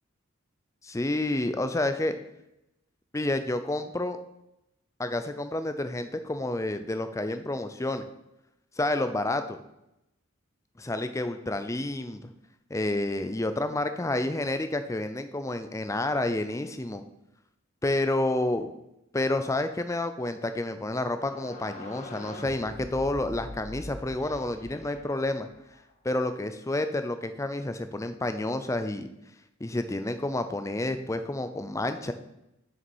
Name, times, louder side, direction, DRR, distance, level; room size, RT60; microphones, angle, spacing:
voice 1, 0.8-2.2 3.1-4.2 5.0-8.1 8.8-9.6 10.8-12.2 12.7-17.0 17.8-18.7 19.1-25.5 26.0-29.1 29.6-32.1, left 2 dB, 15° left, 9 dB, 0.5 m, -29 dB
sound 1, 21.1-25.9, left 1 dB, 35° left, 1.1 m, -44 dB
6.6 x 6.2 x 4.5 m, 0.87 s
head